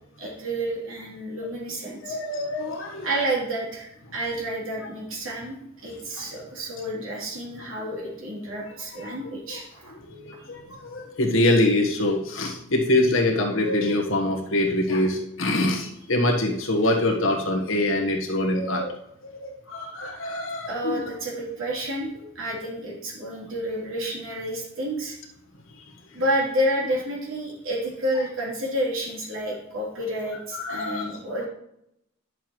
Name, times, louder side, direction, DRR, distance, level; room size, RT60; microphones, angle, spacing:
voice 1, 0.2-2.2 3.0-5.6 5.8-9.9 10.4-10.5 20.7-22.1 22.3-25.2 26.1-31.5, right 1 dB, 70° right, -4 dB, 3.3 m, -30 dB
voice 2, 2.0-3.1 6.2-6.3 9.0-9.2 9.5-9.6 10.0-19.0 19.2-21.0 22.1-22.2 30.5-31.2, left 1 dB, 65° left, 2 dB, 1.4 m, -24 dB
10.5 x 6.8 x 3.2 m, 0.78 s
head